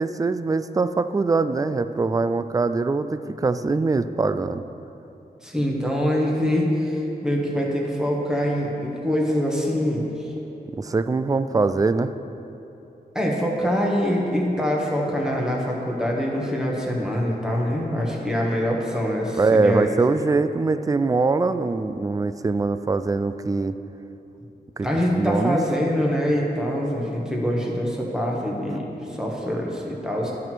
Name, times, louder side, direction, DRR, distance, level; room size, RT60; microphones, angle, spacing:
voice 1, 0.0-4.6 10.8-12.1 19.4-23.8 24.8-24.9 25.1-25.6, right 3 dB, 20° right, 12 dB, 0.3 m, -22 dB
voice 2, 5.4-10.3 13.1-20.0 24.8-30.3, equal, 5° right, -3 dB, 1.6 m, -24 dB
11.5 x 6.2 x 4.6 m, 2.9 s
wide cardioid pair, 75°, 17 cm